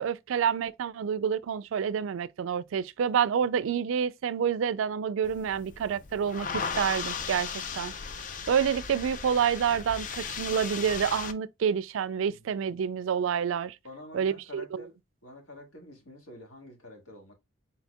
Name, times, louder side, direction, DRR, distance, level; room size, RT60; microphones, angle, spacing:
voice 1, 0.0-7.9 8.5-13.8 14.1-14.8, right 7 dB, 75° right, 0.3 m, -28 dB
sound 1, 5.2-11.3, left 6 dB, 40° left, 0.4 m, -36 dB
voice 2, 12.2-12.7 13.8-15.0 15.2-17.3, left 1 dB, 90° left, 1.8 m, -48 dB
4.2 x 4.0 x 2.2 m
head